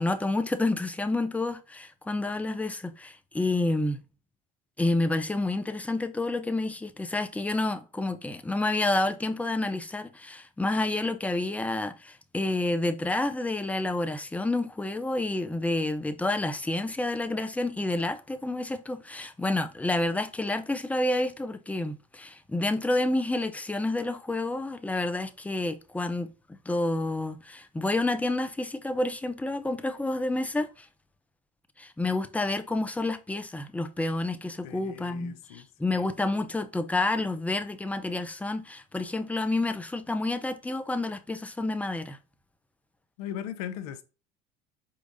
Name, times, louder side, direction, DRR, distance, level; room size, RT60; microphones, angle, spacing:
voice 1, 0.0-4.0 4.8-30.9 31.8-42.2, left 2 dB, 5° left, 0.6 m, -29 dB
voice 2, 34.6-36.0 43.2-44.0, left 10 dB, 75° left, 0.6 m, -39 dB
4.5 x 3.8 x 2.6 m
hypercardioid pair, 80°, 19 cm